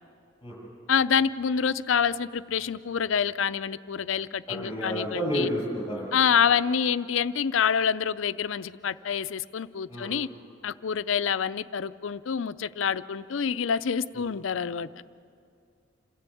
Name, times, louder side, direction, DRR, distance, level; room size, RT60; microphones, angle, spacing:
voice 1, 0.9-5.5 6.1-10.3 10.6-14.9, left 7 dB, 85° left, 15 dB, 0.5 m, -27 dB
voice 2, 4.5-6.1 9.9-10.1 14.1-14.2, equal, 25° left, -3 dB, 7.2 m, -31 dB
28.0 x 13.5 x 8.4 m, 2.4 s
head